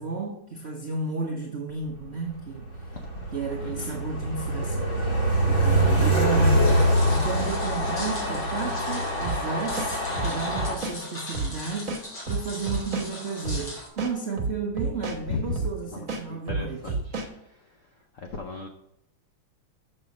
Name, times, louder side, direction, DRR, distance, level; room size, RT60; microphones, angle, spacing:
voice 1, 0.0-2.7 3.3-5.0 5.5-6.7 7.1-17.0, right 4 dB, 60° right, 0 dB, 0.6 m, -33 dB
Train, 2.3-10.7, right 1 dB, 30° left, 1.1 m, -24 dB
voice 2, 3.6-4.0 15.3-15.6 15.9-17.0 18.1-18.7, left 4 dB, 75° left, 4 dB, 0.7 m, -35 dB
sound 1, 6.6-13.9, left 1 dB, 55° left, 3.2 m, -40 dB
sound 2, 9.2-9.4 9.8-11.0 11.3-11.5 11.9-13.1 13.5-13.6 14.0-15.2 15.6-15.7 16.1-17.3, right 3 dB, 45° right, 1.3 m, -30 dB
6.8 x 6.4 x 5.1 m, 0.81 s
omnidirectional pair, 2.3 m